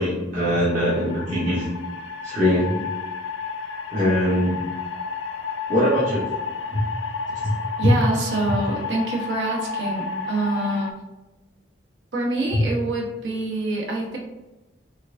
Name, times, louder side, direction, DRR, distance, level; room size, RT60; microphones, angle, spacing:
voice 1, 0.0-1.6 2.2-2.8 3.9-4.6 5.7-6.3 6.7-6.8 12.5-12.6, equal, 40° right, -10 dB, 1.1 m, -22 dB
sound 1, 0.7-10.9, left 5 dB, 75° left, 0.3 m, -31 dB
voice 2, 7.8-10.9 12.1-14.2, right 2 dB, 65° right, -2 dB, 0.9 m, -26 dB
4.3 x 2.5 x 2.5 m, 1.1 s
head